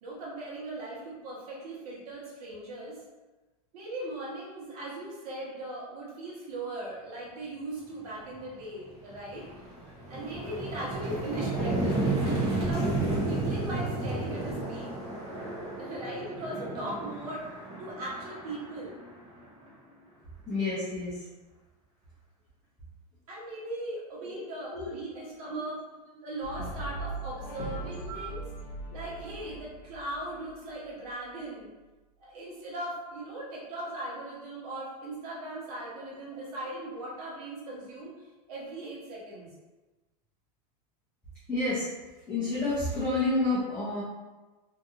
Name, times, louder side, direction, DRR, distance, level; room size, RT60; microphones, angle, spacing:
voice 1, 0.0-3.0 3.7-9.5 9.8-12.9 13.2-15.0 15.7-17.4 17.8-19.0 23.3-25.8 26.2-28.4 28.9-31.7 32.2-39.5, right 1 dB, 65° right, -5 dB, 1.2 m, -39 dB
sound 1, 8.3-8.5 8.9-19.7, right 2 dB, 30° right, 0.7 m, -32 dB
voice 2, 20.5-21.2 24.2-24.4 24.7-24.9 25.5-25.6 28.1-28.2 36.0-36.1 41.5-41.9 42.3-44.0, left 2 dB, 5° left, -12 dB, 0.6 m, -29 dB
Brass instrument, 26.4-30.7, right 2 dB, 70° left, 0.6 m, -39 dB
2.7 x 2.6 x 2.5 m, 1.2 s
supercardioid pair, 150°, 21 cm